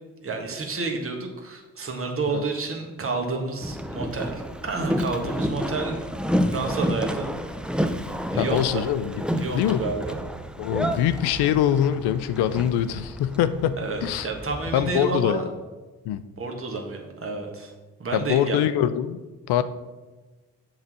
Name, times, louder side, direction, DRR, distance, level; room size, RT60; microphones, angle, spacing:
voice 1, 0.2-6.0 6.5-7.3 8.3-8.8 9.4-10.2 13.8-15.4 16.4-17.7 18.0-18.6, right 4 dB, 30° right, 2 dB, 1.6 m, -30 dB
Boat Water vehicle, 3.6-15.0, equal, ahead, 0.6 m, -30 dB
voice 2, 8.4-9.8 10.6-14.3 14.7-15.4 16.0-16.2 18.1-19.2 19.5-19.6, left 10 dB, 65° left, 13 dB, 0.6 m, -24 dB
7.4 x 4.1 x 6.1 m, 1.2 s
hypercardioid pair, 45°, 41 cm